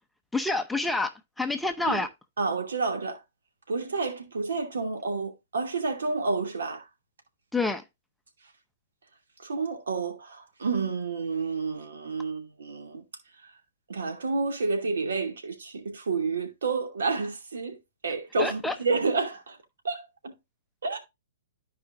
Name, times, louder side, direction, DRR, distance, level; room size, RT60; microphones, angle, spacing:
voice 1, 0.3-1.1 1.4-2.1 7.5-7.8 18.4-18.7, left 3 dB, 5° left, 0.7 m, -27 dB
voice 2, 2.4-3.2 3.7-6.8 9.4-13.0 13.9-17.8 18.0-19.6 19.8-20.3 20.8-21.0, right 4 dB, 65° right, 2.6 m, -30 dB
14.0 x 5.0 x 2.6 m
figure-of-eight pair, 115°, 0 cm